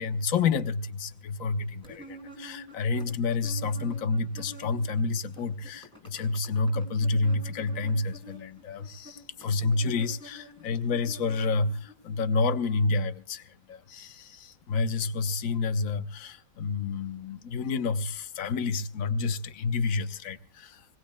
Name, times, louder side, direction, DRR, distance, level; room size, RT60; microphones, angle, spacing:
voice 1, 0.0-20.9, left 4 dB, 60° left, 1.2 m, -29 dB
sound 1, 1.8-5.0 5.2-11.9, right 1 dB, 5° left, 6.0 m, -48 dB
25.0 x 20.5 x 2.2 m
omnidirectional pair, 1.8 m